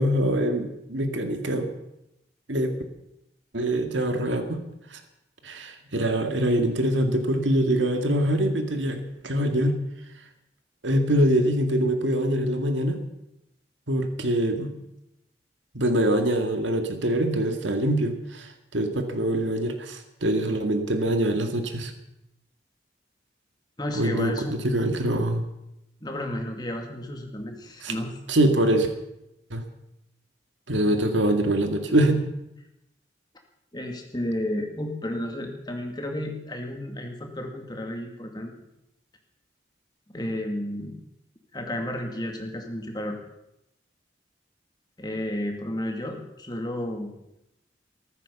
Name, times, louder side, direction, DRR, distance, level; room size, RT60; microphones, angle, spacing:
voice 1, 0.0-1.7 2.5-2.8 3.5-4.6 4.9-5.0 5.4-9.8 10.8-13.0 13.9-14.8 15.7-21.9 23.9-25.5 27.8-27.9 28.3-28.9 29.5-29.6 30.7-32.2, right 1 dB, 85° right, 6 dB, 2.1 m, -24 dB
voice 2, 23.8-24.7 26.0-28.1 33.7-38.5 40.1-41.0 41.5-43.2 45.0-47.1, left 1 dB, 20° left, 3 dB, 2.2 m, -32 dB
14.0 x 14.0 x 7.1 m, 0.86 s
head